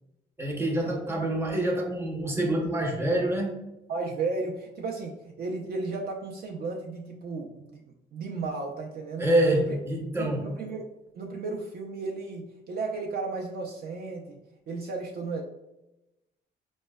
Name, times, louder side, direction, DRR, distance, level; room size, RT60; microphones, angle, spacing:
voice 1, 0.4-3.5 9.2-10.4, right 1 dB, 10° right, 0 dB, 0.7 m, -26 dB
voice 2, 3.9-7.8 8.1-9.8 10.2-10.9 11.1-14.4 14.7-15.4, right 3 dB, 50° right, 0 dB, 0.4 m, -34 dB
4.2 x 2.1 x 2.2 m, 0.95 s
cardioid pair, 90°, 20 cm